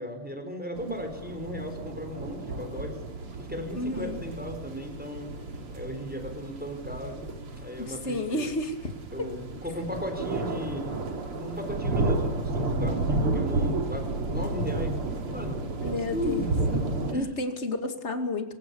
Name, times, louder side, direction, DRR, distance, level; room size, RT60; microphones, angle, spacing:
voice 1, 0.0-3.0 3.4-5.3 5.7-7.3 7.6-8.5 9.1-10.9 11.2-15.6 15.8-16.8 17.1-17.3, equal, 5° right, 5 dB, 4.4 m, -36 dB
sound 1, 0.7-17.1, right 2 dB, 90° right, 3.5 m, -32 dB
voice 2, 3.7-4.2 7.8-8.9 9.2-9.3 15.8-16.5 17.1-18.5, left 2 dB, 30° left, 7 dB, 2.5 m, -31 dB
23.0 x 20.5 x 7.1 m, 0.87 s
omnidirectional pair, 2.4 m